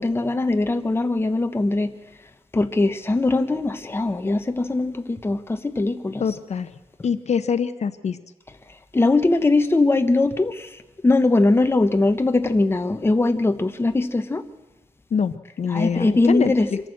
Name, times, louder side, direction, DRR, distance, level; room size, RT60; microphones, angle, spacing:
voice 1, 0.0-1.9 2.5-6.2 8.9-10.5 11.0-14.4 15.7-16.7, left 2 dB, 20° left, 8 dB, 0.9 m, -20 dB
voice 2, 6.2-6.7 7.0-8.2 15.1-16.8, left 6 dB, 60° left, 12 dB, 0.7 m, -24 dB
25.0 x 14.0 x 7.8 m, 1.1 s
wide cardioid pair, 175°, 13 cm